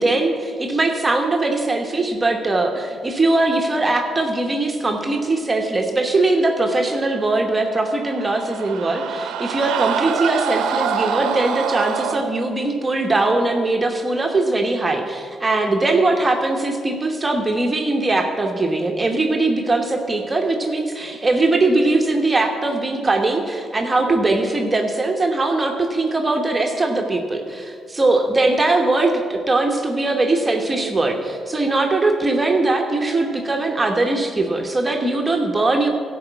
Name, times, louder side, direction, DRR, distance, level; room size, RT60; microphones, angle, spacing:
voice 1, 0.0-35.9, right 2 dB, 20° right, 2 dB, 1.1 m, -20 dB
sound 1, 7.8-12.2, right 7 dB, 90° right, 0.7 m, -25 dB
12.5 x 5.5 x 8.1 m, 2.2 s
cardioid pair, 90°, 0 cm